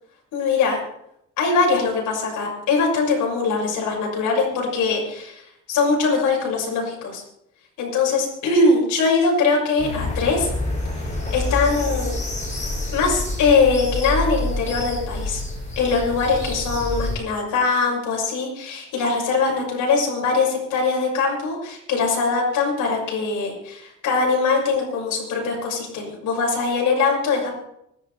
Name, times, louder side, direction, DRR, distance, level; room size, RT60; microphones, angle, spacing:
voice 1, 0.3-0.8 1.4-7.2 7.8-10.5 11.3-12.2 12.9-15.4 15.8-27.5, left 4 dB, 85° left, -2 dB, 6.3 m, -22 dB
sound 1, 9.8-17.2, left 1 dB, 25° left, 7.5 m, -27 dB
26.5 x 12.5 x 3.5 m, 0.78 s
cardioid pair, 90°, 30 cm